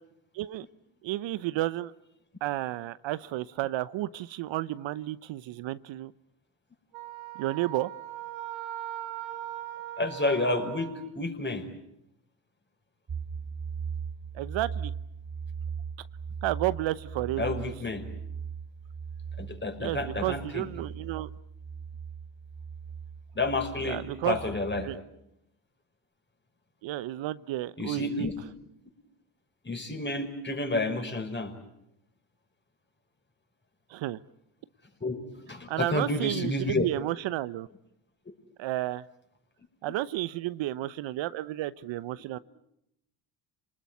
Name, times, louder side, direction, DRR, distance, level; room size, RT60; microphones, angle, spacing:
voice 1, 0.3-0.7 1.0-1.9 2.4-6.1 7.3-7.9 14.3-14.9 16.4-17.7 19.8-21.3 23.8-24.4 24.8-25.0 26.8-28.3 33.9-34.2 35.7-37.7 38.6-39.0 39.8-42.4, right 15 dB, 65° right, 16 dB, 0.9 m, -32 dB
Wind instrument woodwind instrument, 6.9-11.1, right 13 dB, 85° right, 4.8 m, -39 dB
voice 2, 10.0-11.7 17.4-18.1 19.4-20.7 23.3-24.9 27.8-28.3 29.6-31.5 35.0-35.2 35.4-36.9, left 2 dB, 20° left, 6 dB, 5.6 m, -30 dB
sound 1, 13.1-25.0, right 6 dB, 35° right, 2.1 m, -39 dB
28.0 x 20.0 x 9.4 m, 0.81 s
supercardioid pair, 70°, 49 cm